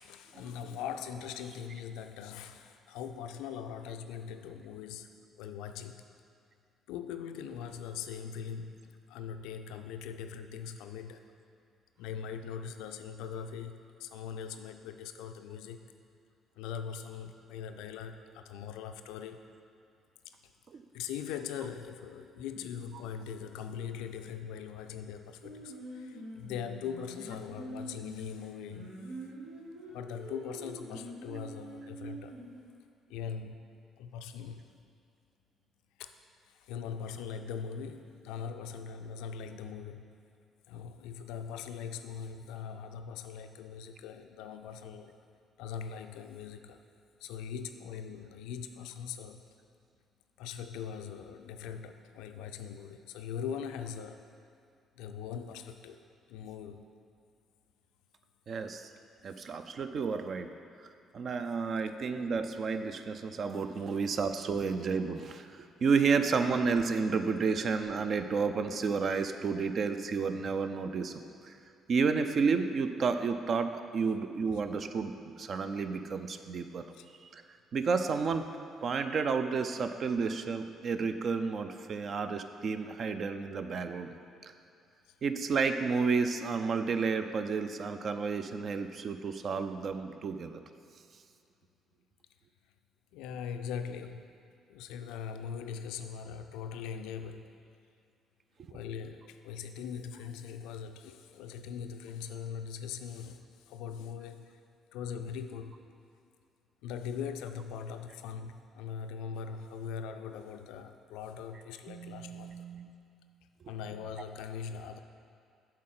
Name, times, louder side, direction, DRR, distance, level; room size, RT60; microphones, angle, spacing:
voice 1, 0.0-6.0 6.9-8.8 9.1-11.2 12.0-15.9 16.6-19.4 20.9-28.9 29.9-32.4 33.1-33.6 34.0-34.6 36.0-36.1 36.5-40.1 40.7-45.2 45.6-46.8 47.2-49.4 50.4-54.2 55.0-56.9 76.9-77.1 93.1-94.3 94.7-97.5 98.7-104.6 104.9-105.8 106.8-112.6 113.7-115.0, left 7 dB, 70° left, 8 dB, 0.3 m, -41 dB
Singing, 25.4-32.7, equal, 75° right, 1.6 m, -45 dB
voice 2, 58.5-58.9 59.2-60.5 61.1-71.6 71.9-76.8 77.2-77.4 77.7-78.5 78.8-84.1 84.4-84.5 85.2-90.6 98.6-98.8 111.9-113.0, right 5 dB, 50° right, 8 dB, 0.4 m, -31 dB
7.3 x 4.5 x 5.8 m, 2.4 s
figure-of-eight pair, 45°, 0 cm